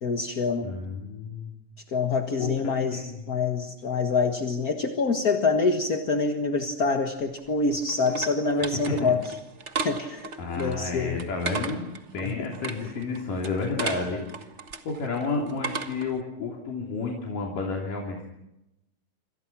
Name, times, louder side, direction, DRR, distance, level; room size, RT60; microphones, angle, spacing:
voice 1, 0.0-0.7 1.9-9.2 9.8-10.3 10.6-11.2 12.2-12.3, left 4 dB, 40° left, 4 dB, 1.3 m, -26 dB
voice 2, 0.6-1.6 2.4-3.2 8.9-9.2 10.4-14.2 14.8-18.3, left 3 dB, 75° left, -1 dB, 4.9 m, -31 dB
sound 1, 7.2-16.2, right 4 dB, 65° right, 0.7 m, -37 dB
27.5 x 26.5 x 6.1 m, 0.89 s
omnidirectional pair, 3.8 m